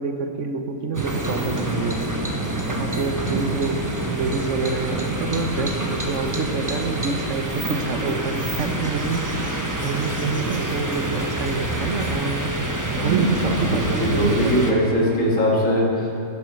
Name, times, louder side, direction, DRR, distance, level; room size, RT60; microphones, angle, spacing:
voice 1, 0.0-2.0 2.7-3.8 4.1-9.5 9.8-12.5 13.0-14.8, right 4 dB, 70° right, 6 dB, 1.2 m, -27 dB
sound 1, 0.9-14.7, right 1 dB, 15° right, 0.9 m, -27 dB
voice 2, 13.0-16.1, equal, 80° left, -3 dB, 2.6 m, -21 dB
10.5 x 9.8 x 6.4 m, 2.8 s
omnidirectional pair, 1.3 m